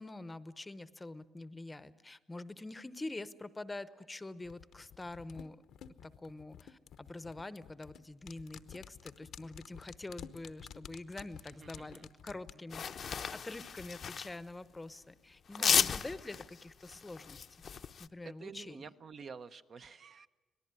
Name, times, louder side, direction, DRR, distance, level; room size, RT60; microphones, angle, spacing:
voice 1, 0.0-5.6 6.0-17.7 18.0-18.9, left 2 dB, 15° left, 15 dB, 0.8 m, -46 dB
sound 1, 4.4-13.9 14.2-14.3, left 9 dB, 75° left, 0.9 m, -52 dB
voice 2, 11.6-12.1 15.5-15.8 18.2-20.3, right 5 dB, 45° right, 10 dB, 0.8 m, -49 dB
sound 2, 12.7-14.4 15.5-18.1, left 7 dB, 50° left, 0.7 m, -34 dB
25.5 x 18.5 x 9.6 m, 1.2 s
cardioid pair, 130°, 0 cm